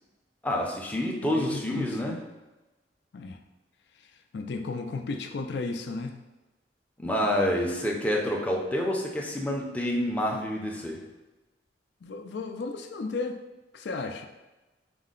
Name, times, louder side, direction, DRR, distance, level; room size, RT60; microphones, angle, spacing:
voice 1, 0.4-2.2 7.0-11.0, equal, 10° left, -1 dB, 0.5 m, -28 dB
voice 2, 1.2-2.2 3.1-3.4 4.3-6.2 12.0-13.4 13.7-14.3, left 3 dB, 65° left, 6 dB, 0.4 m, -34 dB
5.1 x 2.1 x 3.8 m, 1.1 s
head